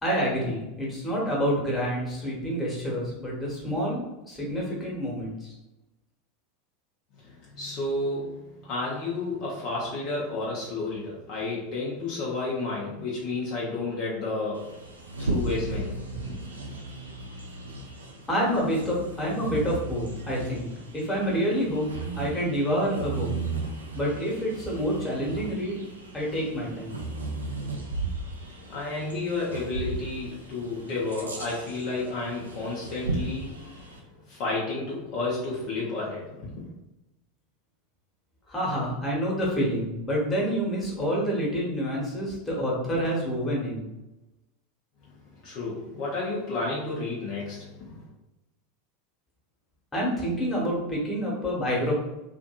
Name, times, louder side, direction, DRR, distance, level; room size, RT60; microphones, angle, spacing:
voice 1, 0.0-5.5 18.3-23.3 23.9-25.8 26.1-27.0 38.5-43.8 49.9-51.9, equal, 15° left, -4 dB, 1.1 m, -28 dB
voice 2, 7.2-14.8 15.2-16.4 28.7-36.7 45.0-48.0, left 3 dB, 45° left, -5 dB, 0.7 m, -32 dB
Bird vocalization bird call bird song, 14.5-34.0, right 3 dB, 80° right, 0.4 m, -36 dB
2.7 x 2.5 x 2.2 m, 0.98 s
figure-of-eight pair, 80°, 0 cm